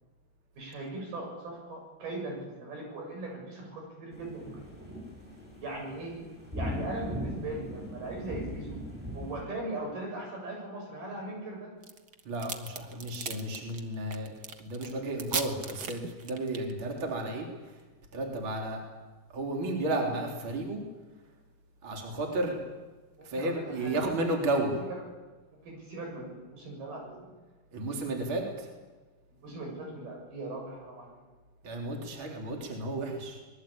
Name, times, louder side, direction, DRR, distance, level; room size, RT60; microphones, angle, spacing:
voice 1, 0.6-4.9 5.6-6.2 6.5-8.8 9.1-11.7 23.2-24.1 24.9-25.0 25.5-27.3 28.4-28.6 29.4-31.2, right 2 dB, 85° right, 1 dB, 9.3 m, -39 dB
sound 1, 4.1-9.4, equal, ahead, 7.9 m, -39 dB
candy wrapper, 11.8-16.7, right 5 dB, 65° right, 1.0 m, -36 dB
voice 2, 12.3-14.3 14.6-17.5 18.1-18.8 19.3-20.8 21.8-22.6 23.2-24.8 27.7-28.7 31.6-33.4, right 2 dB, 35° right, 1 dB, 4.1 m, -32 dB
24.0 x 21.5 x 8.8 m, 1.3 s
omnidirectional pair, 4.3 m